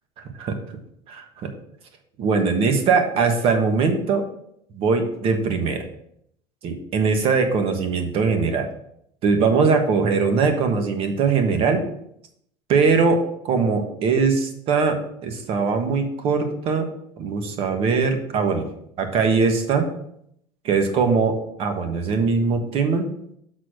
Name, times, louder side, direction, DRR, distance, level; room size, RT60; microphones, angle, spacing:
voice 1, 0.2-0.5 1.1-1.5 2.2-4.2 4.7-5.9 6.6-8.6 9.2-11.8 12.7-16.9 17.2-18.7 19.0-19.9 20.6-21.3 21.6-23.1, right 5 dB, 50° right, 6 dB, 1.3 m, -21 dB
6.5 x 4.1 x 6.3 m, 0.73 s
cardioid pair, 135°, 13 cm